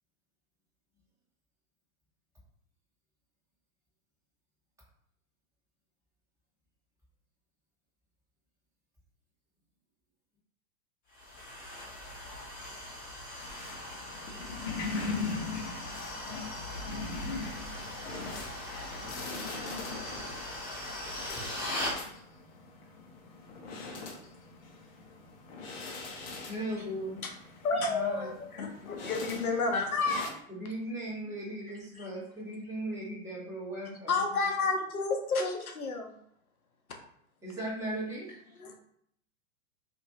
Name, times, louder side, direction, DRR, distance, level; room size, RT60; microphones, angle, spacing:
sound 1, 11.1-22.0, left 1 dB, 20° left, 1.0 m, -40 dB
voice 1, 12.2-16.9, right 2 dB, 45° right, -3 dB, 1.3 m, -66 dB
sound 2, 13.4-30.3, left 4 dB, 45° left, 0.7 m, -41 dB
voice 2, 26.4-27.2 27.9-28.3 30.5-34.1 37.4-38.6, right 1 dB, 5° right, -7 dB, 1.3 m, -37 dB
voice 3, 27.6-30.4 34.1-36.1 38.6-38.7, left 3 dB, 80° left, 2 dB, 0.7 m, -30 dB
2.7 x 2.6 x 2.8 m, 0.70 s
figure-of-eight pair, 100°, 42 cm